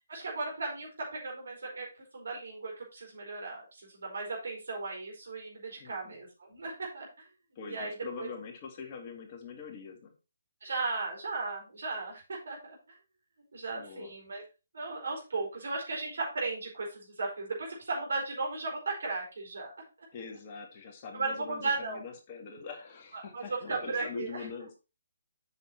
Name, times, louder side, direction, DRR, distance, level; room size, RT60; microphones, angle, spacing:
voice 1, 0.1-7.3 7.7-8.3 10.6-13.0 13.5-14.4 14.7-19.7 21.1-22.0 23.1-24.5, right 3 dB, 60° right, 0 dB, 4.6 m, -36 dB
voice 2, 5.8-6.1 7.6-10.2 13.7-14.1 20.1-24.7, left 5 dB, 30° left, 3 dB, 2.0 m, -43 dB
7.9 x 6.1 x 4.3 m, 0.30 s
figure-of-eight pair, 140°, 0 cm